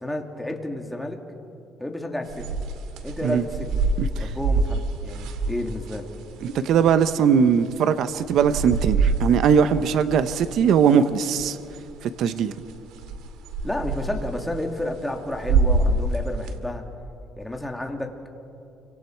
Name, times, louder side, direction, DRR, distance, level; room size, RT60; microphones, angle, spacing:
voice 1, 0.0-1.2 1.8-2.5 3.0-3.8 4.2-6.1 13.6-16.8 17.4-18.3, left 1 dB, 5° left, 2 dB, 2.4 m, -31 dB
sound 1, 2.3-7.0 7.3-7.4 7.6-9.6 9.8-11.0 11.4-12.0 12.3-16.5, right 3 dB, 85° right, 2.0 m, -25 dB
voice 2, 6.4-11.6 12.0-12.5, right 7 dB, 65° right, 11 dB, 0.9 m, -20 dB
29.5 x 25.0 x 4.6 m, 2.7 s
cardioid pair, 120°, 0 cm